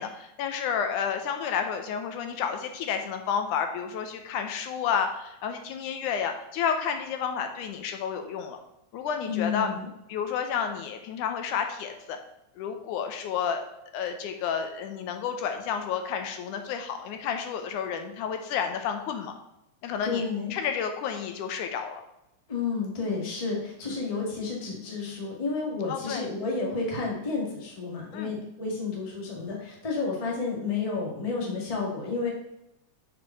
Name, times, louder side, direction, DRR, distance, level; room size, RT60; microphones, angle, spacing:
voice 1, 0.0-8.6 8.9-9.7 10.1-12.2 12.6-13.6 13.9-19.3 19.8-20.2 20.5-22.0 25.9-26.3 28.1-28.3, left 7 dB, 75° left, 6 dB, 2.2 m, -31 dB
voice 2, 9.3-9.9 20.0-20.6 22.5-32.3, left 4 dB, 20° left, -2 dB, 1.1 m, -31 dB
6.4 x 5.1 x 5.6 m, 0.87 s
omnidirectional pair, 3.7 m